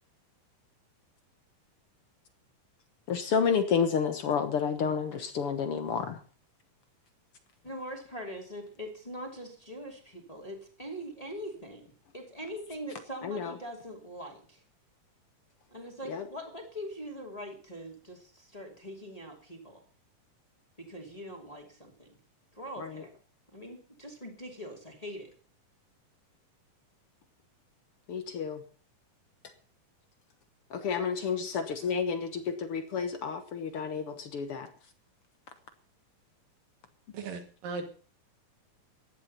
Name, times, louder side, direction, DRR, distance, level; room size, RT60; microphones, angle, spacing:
voice 1, 3.1-6.2 13.2-13.5 16.1-16.2 22.8-23.0 28.1-28.6 30.7-34.7, left 6 dB, 60° left, 10 dB, 1.5 m, -30 dB
voice 2, 7.6-14.6 15.7-19.8 20.8-22.2 22.5-23.1 23.5-25.3, equal, 10° left, 1 dB, 2.5 m, -42 dB
voice 3, 37.1-37.8, right 4 dB, 80° right, 5 dB, 3.9 m, -37 dB
16.0 x 11.0 x 5.7 m, 0.40 s
omnidirectional pair, 3.9 m